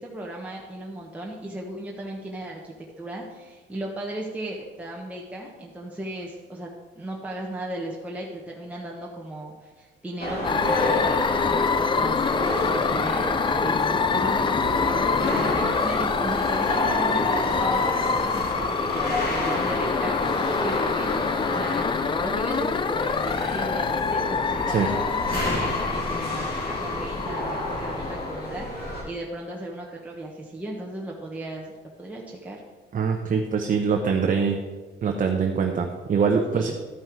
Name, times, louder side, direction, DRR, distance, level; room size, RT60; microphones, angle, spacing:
voice 1, 0.0-6.7 6.9-11.2 11.4-12.2 12.7-14.9 15.3-21.9 22.2-25.0 25.3-31.7 32.0-32.6 36.5-36.7, right 1 dB, 5° right, -3 dB, 1.3 m, -36 dB
sound 1, 10.2-29.0, left 1 dB, 50° left, 3.0 m, -29 dB
sound 2, 10.4-28.4, left 5 dB, 25° left, 0.3 m, -26 dB
voice 2, 32.9-34.6 35.0-36.7, right 5 dB, 40° right, 3 dB, 0.9 m, -23 dB
12.5 x 5.5 x 4.7 m, 1.4 s
cardioid pair, 90°, 20 cm